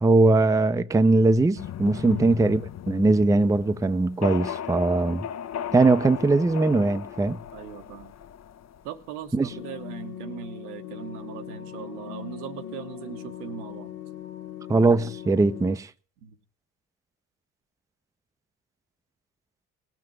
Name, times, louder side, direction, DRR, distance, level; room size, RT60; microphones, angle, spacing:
voice 1, 0.0-2.6 2.9-5.3 5.7-7.4 9.3-9.5 14.7-15.9, right 3 dB, 10° right, 0.5 m, -20 dB
sound 1, 1.6-9.2, left 9 dB, 40° left, 0.6 m, -36 dB
voice 2, 7.5-8.1 8.8-13.9 16.2-16.4, right 9 dB, 80° right, 1.3 m, -39 dB
sound 2, 9.5-15.7, left 12 dB, 85° left, 1.5 m, -40 dB
18.0 x 6.0 x 7.4 m
hypercardioid pair, 60°, 43 cm